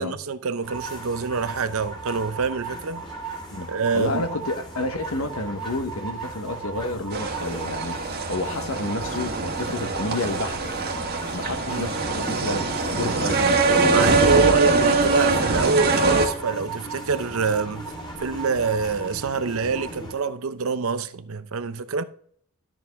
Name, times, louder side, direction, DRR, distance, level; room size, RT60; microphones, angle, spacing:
voice 1, 0.0-3.0 3.7-4.2 11.7-11.9 13.9-17.8 18.2-22.0, right 4 dB, 65° right, 0.7 m, -25 dB
sound 1, 0.6-20.1, right 3 dB, 20° left, 3.1 m, -36 dB
voice 2, 3.9-8.0 8.3-10.7 11.3-12.7 12.9-14.4, left 2 dB, 65° left, 1.2 m, -30 dB
sound 2, 7.1-16.3, right 3 dB, 45° right, 1.5 m, -23 dB
12.5 x 7.0 x 3.6 m
head